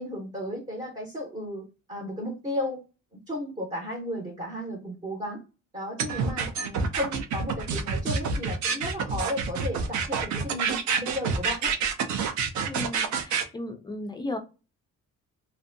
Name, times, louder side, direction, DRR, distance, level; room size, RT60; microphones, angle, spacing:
voice 1, 0.0-2.8 3.3-5.4 5.7-11.7, left 1 dB, 15° right, -1 dB, 0.7 m, -34 dB
sound 1, 6.0-13.4, right 5 dB, 60° right, 0.5 m, -27 dB
voice 2, 12.6-14.4, left 2 dB, 15° left, 4 dB, 0.3 m, -35 dB
2.6 x 2.1 x 2.5 m, 0.30 s
cardioid pair, 170°, 32 cm